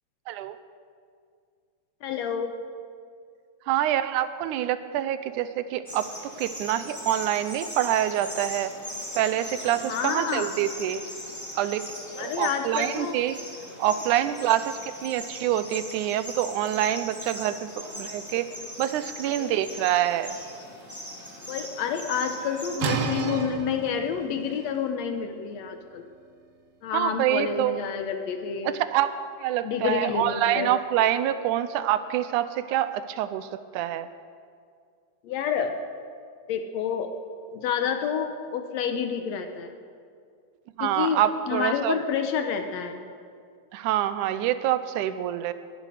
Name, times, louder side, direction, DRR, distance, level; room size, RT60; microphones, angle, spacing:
voice 1, 2.0-2.5 9.6-10.5 12.2-13.2 19.2-19.6 21.5-26.1 26.8-28.7 29.6-30.7 35.2-35.7 36.5-37.1 37.5-39.7 40.8-43.0, left 7 dB, 70° left, 6 dB, 1.9 m, -29 dB
voice 2, 3.7-8.7 9.2-11.0 11.6-11.8 12.2-13.4 13.8-14.7 15.0-17.7 18.0-18.5 18.8-20.4 26.9-27.8 28.7-29.1 29.4-33.5 33.7-34.1 40.8-42.0 43.7-45.5, right 12 dB, 85° right, 12 dB, 2.1 m, -26 dB
sound 1, 5.9-22.8, equal, 10° left, 1.4 m, -39 dB
sound 2, 22.8-28.4, right 5 dB, 65° right, 2.1 m, -34 dB
20.5 x 12.0 x 4.9 m, 2.2 s
omnidirectional pair, 3.5 m